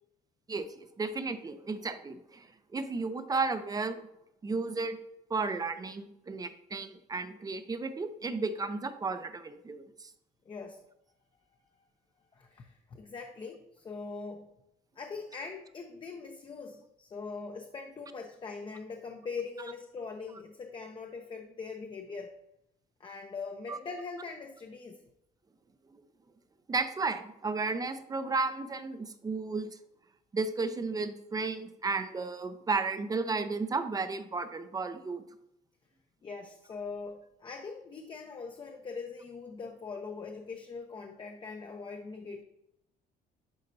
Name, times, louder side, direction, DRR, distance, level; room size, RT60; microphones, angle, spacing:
voice 1, 0.5-2.5 2.7-4.0 4.4-5.0 5.3-10.1 23.7-23.8 25.9-26.0 26.7-29.7 30.3-35.2, right 4 dB, 20° right, 10 dB, 0.5 m, -33 dB
voice 2, 10.4-10.8 12.3-14.5 15.0-22.3 23.0-25.0 36.2-42.4, left 4 dB, 30° left, 3 dB, 0.6 m, -42 dB
10.5 x 4.2 x 2.7 m, 0.81 s
cardioid pair, 110°, 17 cm